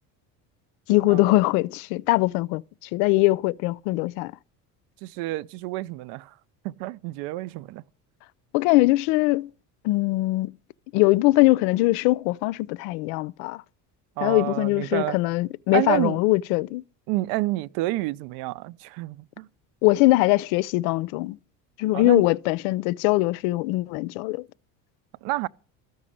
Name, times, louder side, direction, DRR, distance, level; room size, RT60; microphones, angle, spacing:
voice 1, 0.9-2.6 2.9-4.3 8.5-9.5 9.8-10.5 10.9-13.6 14.2-16.8 19.8-21.4 21.8-24.4, left 20 dB, 85° left, 0.7 m, -21 dB
voice 2, 5.0-6.3 6.6-7.8 14.2-15.2 15.7-16.2 17.1-19.5 21.9-22.2 25.2-25.5, right 18 dB, 75° right, 0.7 m, -29 dB
13.5 x 6.3 x 10.0 m
cardioid pair, 125°, 41 cm